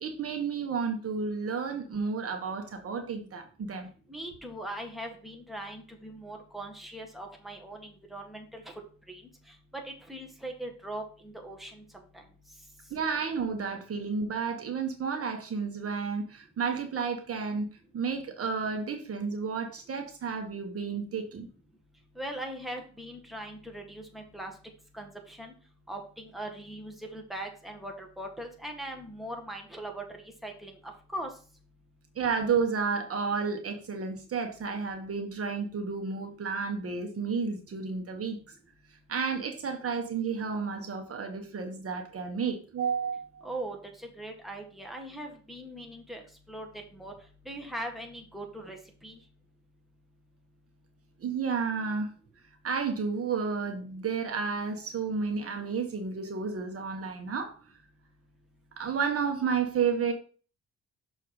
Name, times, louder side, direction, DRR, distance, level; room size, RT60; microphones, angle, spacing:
voice 1, 0.0-3.9 12.9-17.7 17.9-21.5 32.1-38.4 39.1-43.4 51.2-52.1 52.6-57.6 58.8-60.1, right 5 dB, 50° right, 1.4 m, -31 dB
voice 2, 4.1-8.7 9.1-9.2 9.7-11.8 12.1-12.2 22.2-24.5 24.9-25.5 25.9-30.1 30.4-31.3 43.4-46.2 46.5-47.1 47.5-49.2, right 1 dB, ahead, 1.8 m, -40 dB
6.5 x 4.4 x 4.8 m
cardioid pair, 90°, 30 cm